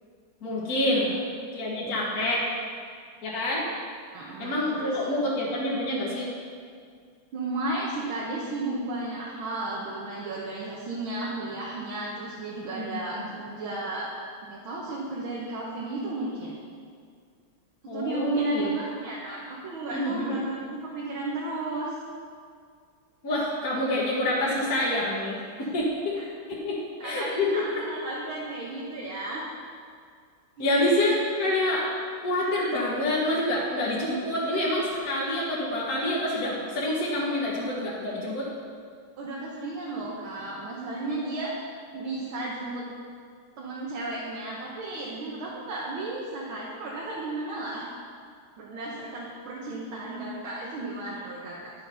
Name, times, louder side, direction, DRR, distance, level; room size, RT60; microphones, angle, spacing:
voice 1, 0.4-1.1 1.5-2.4 3.2-3.6 4.4-6.3 12.7-13.0 17.9-18.7 19.9-20.4 23.2-26.1 26.5-27.7 30.6-31.9 32.2-38.5, left 1 dB, 50° left, -6 dB, 1.7 m, -27 dB
voice 2, 1.8-2.1 4.1-5.2 7.3-14.1 14.4-16.6 17.9-22.0 25.6-25.7 26.2-26.3 27.0-29.5 30.6-30.8 39.2-41.6 41.9-42.9 43.6-47.9 48.6-51.7, right 2 dB, 90° right, -5 dB, 1.9 m, -34 dB
10.5 x 6.0 x 5.6 m, 2.1 s
omnidirectional pair, 2.2 m